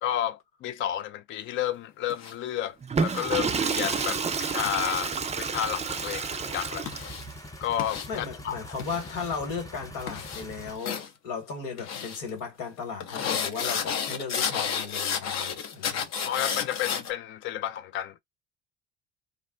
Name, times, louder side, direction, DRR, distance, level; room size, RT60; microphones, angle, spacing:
voice 1, 0.0-2.8 3.0-6.9 7.6-8.6 16.3-18.2, left 11 dB, 40° left, 0.4 m, -31 dB
sound 1, 2.1-2.3 3.0-3.2 3.8-4.1 4.6-5.1 5.8-6.2 6.9-7.2 7.8-8.1 8.8-9.4 10.0-10.4 10.8-11.1 11.8-12.2 13.0-17.1, left 7 dB, 55° left, 0.8 m, -32 dB
Water / Toilet flush, 2.8-7.3, right 5 dB, 20° right, 0.5 m, -30 dB
sound 2, 3.9-10.8, left 1 dB, 10° left, 0.7 m, -44 dB
voice 2, 8.1-16.0, left 5 dB, 75° left, 1.6 m, -36 dB
2.5 x 2.0 x 3.7 m
hypercardioid pair, 70°, 32 cm